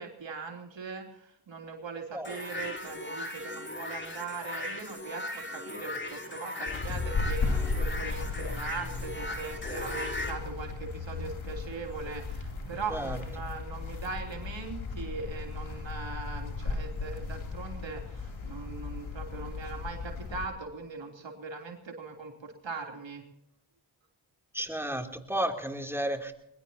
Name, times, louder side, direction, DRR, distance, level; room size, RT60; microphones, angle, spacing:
voice 1, 0.0-23.2, right 4 dB, 65° right, 2 dB, 3.4 m, -40 dB
sound 1, 2.2-10.3, left 2 dB, 25° left, 4.0 m, -38 dB
sound 2, 6.7-20.4, left 4 dB, 75° left, 3.3 m, -35 dB
voice 2, 24.5-26.3, right 1 dB, 5° right, 3 dB, 3.1 m, -32 dB
22.5 x 21.0 x 2.9 m, 0.77 s
cardioid pair, 40°, 48 cm